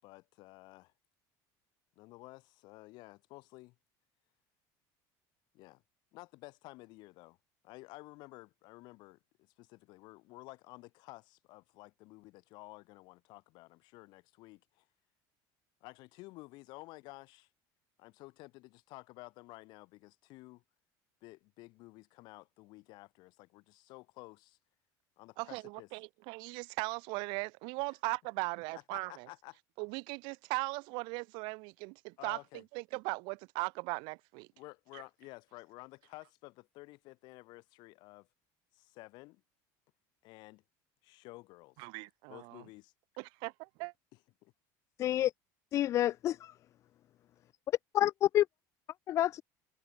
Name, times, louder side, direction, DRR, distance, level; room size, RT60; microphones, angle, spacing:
voice 1, 0.0-0.9 2.0-3.8 5.5-5.8 6.1-7.4 7.6-14.9 15.8-17.5 18.0-20.6 21.2-24.6 25.2-25.9 28.7-29.6 32.2-32.6 34.6-38.3 38.7-39.4 40.2-40.6 41.0-41.9 42.3-42.9 44.4-44.5 45.0-45.2, left 22 dB, 60° left, 7.6 m, -52 dB
voice 2, 25.4-29.3 29.8-34.5 34.9-35.0 41.8-42.6 43.2-43.9, right 30 dB, 70° right, 2.1 m, -39 dB
voice 3, 45.0-45.3 45.7-46.5 47.9-48.4 49.1-49.4, left 12 dB, 35° left, 0.4 m, -28 dB
cardioid pair, 150°, 8 cm